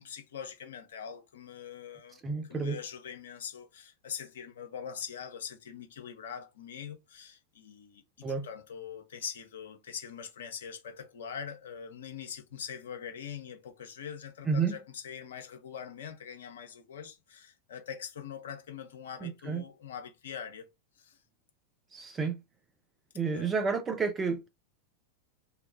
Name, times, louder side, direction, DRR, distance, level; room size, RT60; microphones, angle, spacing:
voice 1, 0.0-20.7 21.0-21.2 23.3-23.5, left 7 dB, 60° left, 0.6 m, -43 dB
voice 2, 2.2-2.8 8.2-8.5 14.5-14.8 19.2-19.6 21.9-22.4 23.1-24.5, right 5 dB, 20° right, 0.4 m, -30 dB
2.8 x 2.2 x 2.5 m
figure-of-eight pair, 90°, 0 cm